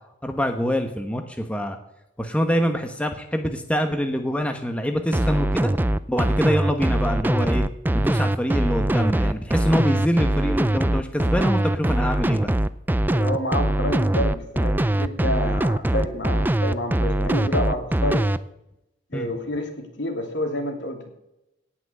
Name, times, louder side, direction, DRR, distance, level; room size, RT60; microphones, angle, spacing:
voice 1, 0.2-1.8 2.2-5.7 6.1-7.6 7.9-12.5 19.1-19.3, equal, 5° left, 5 dB, 1.1 m, -25 dB
sound 1, 5.1-18.4, right 1 dB, 10° right, 0.4 m, -22 dB
voice 2, 13.1-18.3 19.1-21.1, left 1 dB, 75° left, 3 dB, 3.0 m, -28 dB
18.0 x 6.0 x 7.9 m, 0.87 s
head